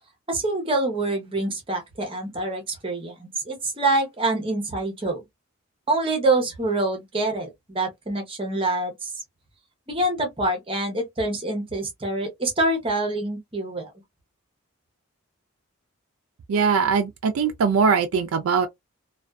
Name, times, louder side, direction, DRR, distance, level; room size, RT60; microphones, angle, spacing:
voice 1, 0.3-5.2 5.9-9.1 9.9-13.9, right 2 dB, 25° right, 0.7 m, -26 dB
voice 2, 16.5-18.7, right 5 dB, 85° right, 0.4 m, -21 dB
2.4 x 2.3 x 2.2 m
head